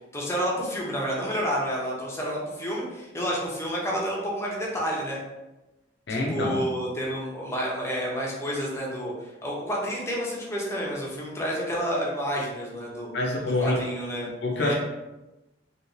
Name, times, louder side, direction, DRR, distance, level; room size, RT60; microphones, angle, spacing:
voice 1, 0.1-5.2 6.1-13.1 13.6-14.3 14.6-14.7, equal, 15° left, -3 dB, 0.7 m, -30 dB
voice 2, 6.1-6.7 13.1-13.8 14.4-14.7, left 2 dB, 65° left, -1 dB, 0.6 m, -26 dB
3.1 x 2.9 x 2.7 m, 1.0 s
head